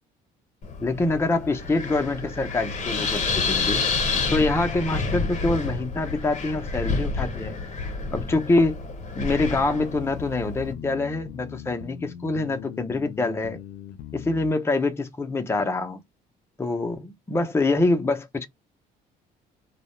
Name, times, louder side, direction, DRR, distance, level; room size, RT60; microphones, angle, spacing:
Wind, 0.6-10.7, left 4 dB, 45° left, 0.8 m, -29 dB
voice 1, 0.8-3.8 4.3-7.6 8.1-8.8 9.1-13.6 14.1-16.0 16.6-18.5, left 2 dB, 15° left, 0.5 m, -25 dB
sound 1, 9.3-14.5, left 11 dB, 85° left, 0.4 m, -40 dB
2.3 x 2.0 x 2.9 m
cardioid pair, 110°, 17 cm